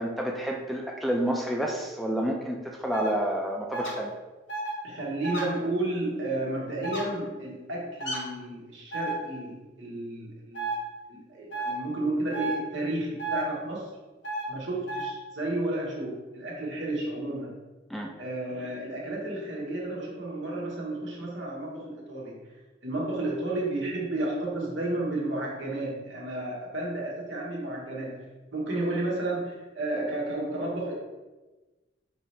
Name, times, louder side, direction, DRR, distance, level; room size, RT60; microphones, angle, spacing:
voice 1, 0.0-4.1 17.9-18.1, right 1 dB, ahead, 0 dB, 0.3 m, -29 dB
sound 1, 2.9-3.1 3.7-3.9 4.5-4.7 5.2-5.4 6.8-7.0 8.0-8.2 8.9-9.1 10.5-10.8 11.5-11.7 12.3-12.6 13.2-13.4 14.2-14.4 14.9-15.0, right 3 dB, 80° left, 1.3 m, -31 dB
voice 2, 4.8-10.7 11.1-13.9 14.5-17.6 18.2-22.4 22.8-28.2 28.5-30.9, right 2 dB, 90° right, -3 dB, 1.2 m, -32 dB
5.3 x 2.8 x 3.2 m, 1.2 s
head